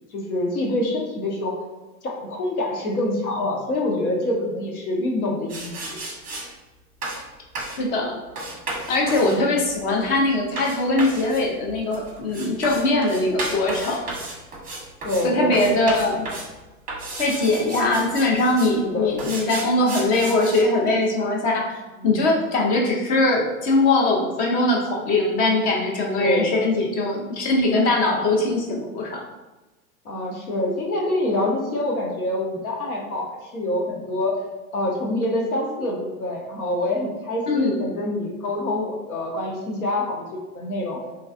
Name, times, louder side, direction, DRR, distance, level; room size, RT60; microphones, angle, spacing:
voice 1, 0.1-1.5 2.0-6.0 9.2-9.5 15.0-15.6 18.8-19.1 22.0-22.2 26.1-26.5 30.0-33.3 33.5-34.3 34.7-41.0, left 1 dB, 70° left, -1 dB, 1.0 m, -26 dB
sound 1, 5.5-6.5 7.0-7.2 7.6-7.8 8.4-15.3 15.5-16.5 16.9-18.8 19.2-20.6, right 2 dB, 20° right, 0.8 m, -33 dB
voice 2, 7.8-8.2 8.9-14.0 15.2-16.3 17.2-29.2 37.5-37.8, left 2 dB, 25° left, 0 dB, 0.3 m, -21 dB
3.1 x 2.3 x 2.4 m, 1.1 s
hypercardioid pair, 100°, 44 cm